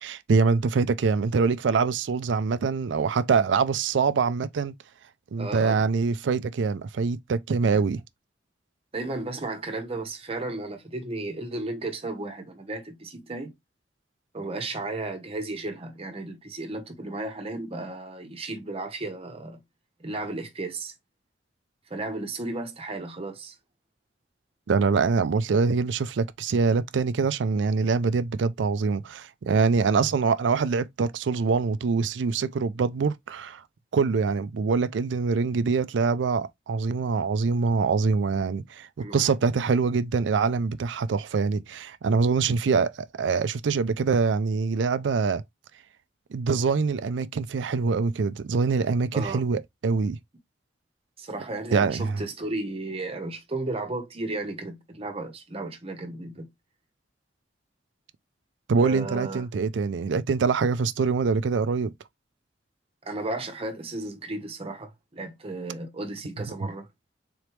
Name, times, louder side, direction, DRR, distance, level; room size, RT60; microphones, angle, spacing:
voice 1, 0.0-4.7 5.3-8.0 24.7-33.6 33.9-45.4 46.3-50.2 51.7-52.2 58.7-61.9, right 4 dB, 90° right, 0.4 m, -24 dB
voice 2, 5.4-5.8 7.7-7.8 8.9-13.5 14.3-19.6 20.0-20.9 21.9-23.6 39.0-39.3 49.1-49.4 51.2-56.5 58.8-59.5 63.0-66.9, right 2 dB, 35° right, 0.9 m, -34 dB
3.9 x 3.3 x 3.0 m
head